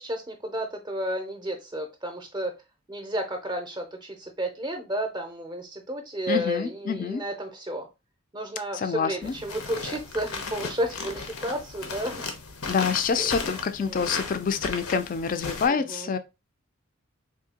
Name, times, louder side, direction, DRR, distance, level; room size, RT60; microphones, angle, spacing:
voice 1, 0.0-2.5 2.9-7.9 8.3-12.3 13.2-13.3 13.8-14.1 15.7-16.2, equal, 20° right, 0.5 m, -32 dB
voice 2, 6.3-7.2 8.7-9.3 12.7-16.2, left 6 dB, 40° left, 0.3 m, -27 dB
sound 1, 9.2-15.7, left 4 dB, 85° left, 0.7 m, -36 dB
3.6 x 2.7 x 2.8 m
head